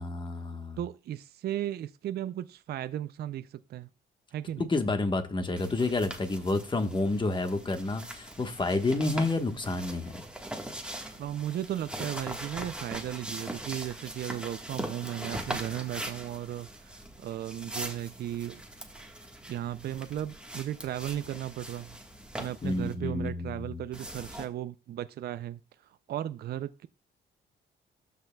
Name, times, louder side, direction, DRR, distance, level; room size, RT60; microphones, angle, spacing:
voice 1, 0.0-0.8 4.7-10.1 22.6-23.8, left 2 dB, 25° left, 1.2 m, -29 dB
voice 2, 0.8-3.9 4.3-4.7 11.1-18.6 19.5-22.0 22.4-26.9, right 12 dB, 55° right, 0.4 m, -36 dB
sound 1, 5.6-22.9 23.9-24.5, right 1 dB, 5° right, 1.4 m, -41 dB
12.5 x 5.6 x 2.2 m
cardioid pair, 90°, 20 cm